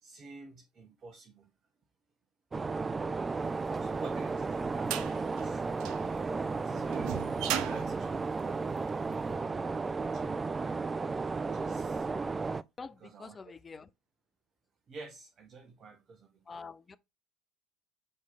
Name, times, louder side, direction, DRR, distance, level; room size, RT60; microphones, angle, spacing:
voice 1, 0.0-1.5 3.6-5.6 6.6-8.7 10.0-10.8 11.5-12.1 13.0-13.5 14.9-16.6, right 3 dB, 35° right, 1.3 m, -50 dB
sound 1, 2.5-12.6, right 4 dB, 20° right, 0.4 m, -34 dB
sound 2, 3.8-9.2, right 11 dB, 60° right, 0.7 m, -38 dB
voice 2, 12.8-13.9 16.5-17.0, left 4 dB, 25° left, 0.6 m, -46 dB
5.5 x 4.8 x 3.6 m
figure-of-eight pair, 65°, 0 cm